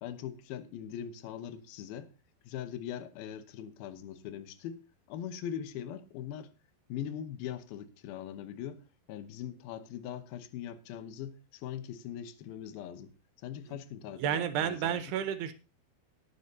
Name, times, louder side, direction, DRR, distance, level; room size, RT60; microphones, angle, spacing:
voice 1, 0.0-2.1 2.4-6.5 6.9-8.8 9.1-13.1 13.4-15.0, left 9 dB, 75° left, 2.7 m, -41 dB
voice 2, 14.2-15.5, right 9 dB, 85° right, 3.3 m, -31 dB
19.0 x 10.0 x 2.8 m
omnidirectional pair, 4.6 m